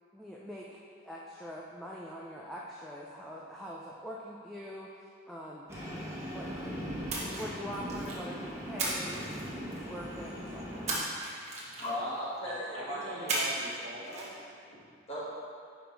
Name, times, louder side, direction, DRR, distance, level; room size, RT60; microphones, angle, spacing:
voice 1, 0.1-0.7 1.0-6.5 7.3-10.9, equal, ahead, -5 dB, 0.4 m, -44 dB
Train, 5.7-11.0, equal, 15° right, 1.0 m, -39 dB
Splash splatter, 7.1-8.3 8.8-10.0 10.9-12.1 13.3-13.8 14.0-14.3, right 2 dB, 35° right, 1.2 m, -35 dB
voice 2, 11.8-13.4 15.1-15.3, equal, 30° left, -8 dB, 1.8 m, -37 dB
voice 3, 12.4-14.5, right 1 dB, 60° right, -4 dB, 1.2 m, -42 dB
5.9 x 5.1 x 4.6 m, 2.3 s
head